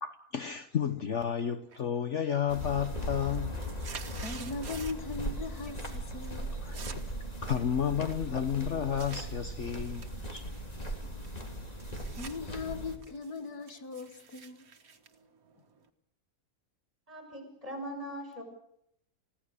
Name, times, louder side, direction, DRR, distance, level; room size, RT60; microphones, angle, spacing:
voice 1, 0.0-3.6 6.6-6.8 7.4-10.6, left 8 dB, 55° left, 1.2 m, -32 dB
sound 1, 1.7-2.1 2.4-5.2 5.5-6.0 6.2-9.3 9.8-12.4 12.7-15.9, right 5 dB, 65° right, 2.0 m, -49 dB
sound 2, 2.5-13.0, equal, 25° left, 3.2 m, -38 dB
voice 2, 4.2-6.5 10.8-10.9 12.2-14.7, left 4 dB, 85° left, 2.4 m, -39 dB
voice 3, 17.1-18.4, equal, 20° right, 6.6 m, -40 dB
30.0 x 16.5 x 6.7 m
omnidirectional pair, 1.6 m